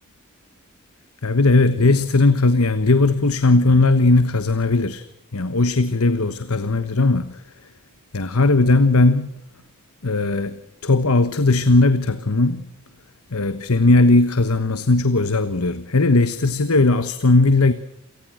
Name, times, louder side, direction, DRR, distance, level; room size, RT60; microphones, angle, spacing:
voice 1, 1.2-5.0 5.3-7.4 8.1-9.4 10.0-10.6 10.8-12.7 13.3-17.7, left 3 dB, 70° left, 1.2 m, -17 dB
28.5 x 19.0 x 7.8 m
head